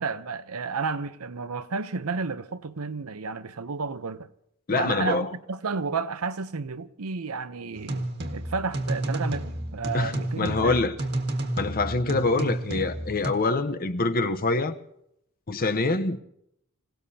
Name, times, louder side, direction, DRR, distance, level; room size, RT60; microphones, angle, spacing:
voice 1, 0.0-4.3 4.7-10.8, right 4 dB, 80° right, 0.8 m, -32 dB
voice 2, 4.7-5.3 9.9-10.9 11.6-14.7 15.5-16.2, left 3 dB, 45° left, 0.9 m, -25 dB
sound 1, 7.7-13.3, right 1 dB, 50° right, 1.8 m, -31 dB
27.5 x 17.5 x 2.8 m
head